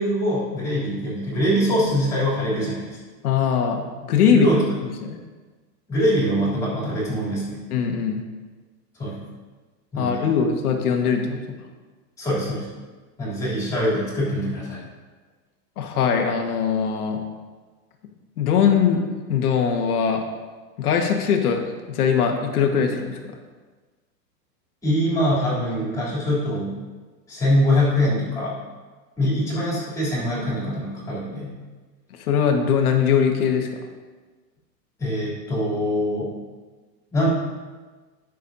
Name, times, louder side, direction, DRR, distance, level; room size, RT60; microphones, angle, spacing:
voice 1, 0.0-3.0 4.3-4.6 5.9-7.6 9.0-9.2 9.9-10.2 12.2-12.7 13.2-14.8 24.8-26.7 27.3-28.6 29.2-31.5 35.0-36.3 37.1-37.3, equal, 5° left, -7 dB, 3.0 m, -23 dB
voice 2, 3.2-4.5 4.8-5.2 7.7-8.2 10.0-11.4 15.8-17.2 18.4-19.0 19.3-20.2 20.8-21.6 21.9-23.2 29.2-29.3 32.2-33.7, left 7 dB, 60° left, 3 dB, 1.5 m, -21 dB
18.5 x 6.5 x 2.7 m, 1.3 s
supercardioid pair, 165°, 50 cm